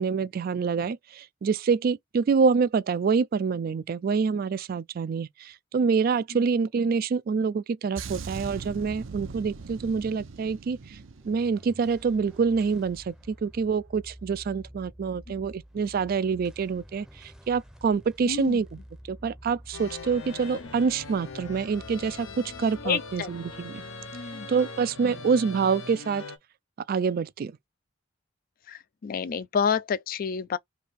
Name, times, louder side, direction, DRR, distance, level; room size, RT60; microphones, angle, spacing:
voice 1, 0.0-11.0 11.3-18.7 19.1-23.8 24.5-26.2 26.9-27.5, right 5 dB, 50° right, 0.3 m, -26 dB
sound 1, 8.0-12.5 12.8-13.1, right 4 dB, 85° right, 0.7 m, -41 dB
sound 2, 10.9-25.5, equal, 5° right, 0.6 m, -50 dB
voice 2, 18.2-18.6 20.5-20.7 22.8-23.3 24.1-24.5 25.0-25.2 28.7-30.6, left 6 dB, 45° left, 0.3 m, -29 dB
sound 3, 19.7-26.4, left 3 dB, 90° left, 0.8 m, -41 dB
3.2 x 2.7 x 4.1 m
head